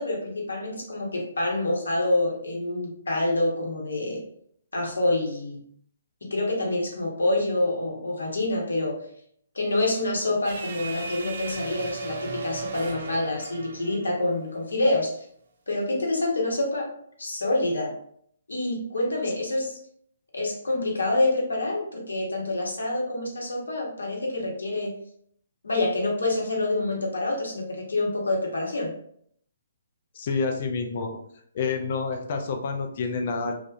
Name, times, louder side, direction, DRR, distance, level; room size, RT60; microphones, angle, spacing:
voice 1, 0.0-4.2 4.7-5.6 6.3-9.0 9.5-15.3 15.7-16.9 17.2-17.9 18.5-19.8 20.3-24.9 25.6-28.9, left 2 dB, 75° left, -1 dB, 0.8 m, -27 dB
sound 1, 10.4-14.8, right 4 dB, 55° right, 0.4 m, -37 dB
voice 2, 30.1-31.2 31.5-33.5, left 4 dB, 50° left, 4 dB, 0.4 m, -28 dB
2.6 x 2.1 x 2.4 m, 0.66 s
figure-of-eight pair, 130°, 0 cm